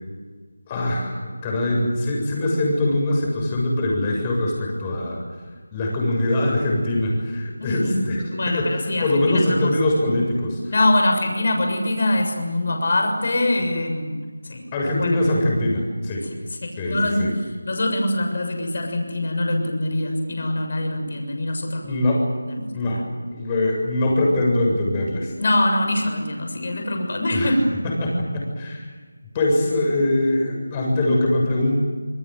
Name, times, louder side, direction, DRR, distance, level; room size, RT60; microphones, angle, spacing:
voice 1, 0.7-5.2 5.7-8.2 8.5-10.7 14.7-16.2 16.8-17.3 21.8-22.2 22.7-23.0 23.3-25.3 27.3-27.5 27.8-28.9 29.3-31.8, left 1 dB, 15° left, -1 dB, 7.4 m, -22 dB
voice 2, 7.6-8.0 8.3-9.7 10.7-14.2 14.4-14.7 15.0-15.1 16.6-17.3 17.7-22.0 22.4-23.1 25.4-27.7, left 1 dB, 45° left, 3 dB, 6.9 m, -23 dB
27.5 x 22.5 x 8.0 m, 1.5 s
figure-of-eight pair, 170°, 0 cm